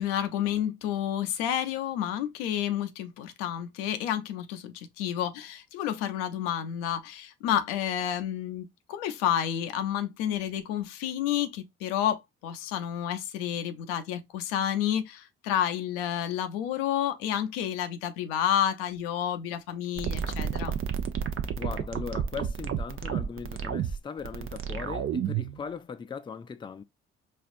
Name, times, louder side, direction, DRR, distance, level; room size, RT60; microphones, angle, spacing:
voice 1, 0.0-20.8, left 10 dB, 80° left, 0.6 m, -30 dB
sound 1, 20.0-25.6, right 8 dB, 45° right, 0.6 m, -31 dB
voice 2, 21.6-26.8, left 6 dB, 15° left, 0.4 m, -39 dB
4.2 x 2.4 x 2.5 m
hypercardioid pair, 50°, 29 cm